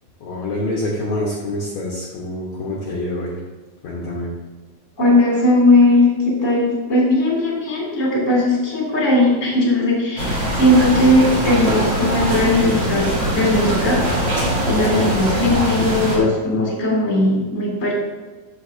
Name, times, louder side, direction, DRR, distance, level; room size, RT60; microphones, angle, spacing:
voice 1, 0.2-3.4 3.8-4.3 14.7-15.0, left 1 dB, 70° left, -4 dB, 1.6 m, -26 dB
voice 2, 5.0-13.1 13.3-14.0 14.7-17.9, left 1 dB, 20° left, -4 dB, 2.4 m, -17 dB
sound 1, 10.2-16.2, equal, 30° right, 2.7 m, -22 dB
13.5 x 6.5 x 2.7 m, 1.3 s
omnidirectional pair, 5.0 m